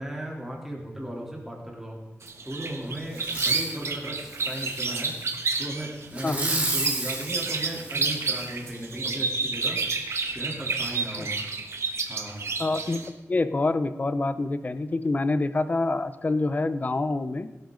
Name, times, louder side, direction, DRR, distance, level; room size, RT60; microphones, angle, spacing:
voice 1, 0.0-2.0 2.4-5.1 5.6-9.8 10.3-11.3 12.1-12.4, right 1 dB, 5° right, -3 dB, 3.4 m, -36 dB
sound 1, 2.2-13.1, right 4 dB, 65° right, 1.4 m, -30 dB
Fireworks, 3.2-3.8 4.3-5.4 6.1-8.5 9.1-9.2, right 2 dB, 30° right, 3.1 m, -32 dB
voice 2, 12.6-17.5, left 2 dB, 35° left, 13 dB, 0.7 m, -26 dB
17.0 x 12.0 x 3.9 m, 1.1 s
wide cardioid pair, 125°, 5 cm